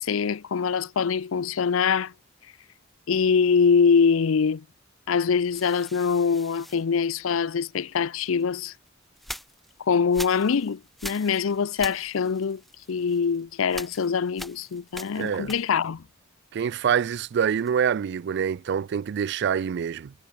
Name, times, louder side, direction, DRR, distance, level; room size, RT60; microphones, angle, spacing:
voice 1, 0.0-2.1 3.1-4.6 5.1-8.7 9.9-12.6 12.9-16.0, left 6 dB, 90° left, 0.5 m, -23 dB
sound 1, 5.5-7.7 8.4-16.0 16.3-17.9, equal, ahead, 2.5 m, -43 dB
voice 2, 15.2-15.5 16.5-20.1, right 7 dB, 55° right, 0.3 m, -26 dB
head